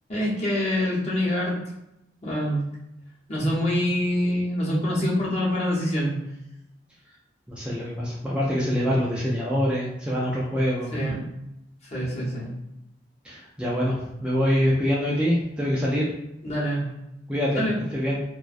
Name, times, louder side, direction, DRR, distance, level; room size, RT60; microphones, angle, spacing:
voice 1, 0.1-1.6 2.2-2.6 3.3-6.1 10.9-11.2 11.9-12.5 16.4-16.9 17.5-17.7, equal, 35° left, -6 dB, 0.8 m, -25 dB
voice 2, 7.5-11.0 13.2-16.1 17.3-17.7 17.9-18.2, equal, 5° right, -6 dB, 0.3 m, -25 dB
2.4 x 2.2 x 2.4 m, 0.86 s
head